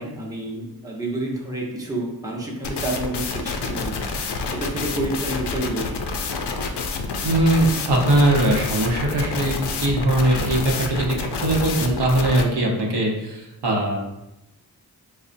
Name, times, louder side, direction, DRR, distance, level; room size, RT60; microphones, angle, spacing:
voice 1, 0.0-4.1 4.5-6.0, right 1 dB, 10° right, -3 dB, 0.7 m, -29 dB
sound 1, 2.6-12.4, left 4 dB, 85° left, 0.5 m, -28 dB
voice 2, 7.2-14.0, right 1 dB, 80° right, -2 dB, 0.8 m, -21 dB
5.3 x 2.1 x 2.5 m, 0.93 s
wide cardioid pair, 95°, 40 cm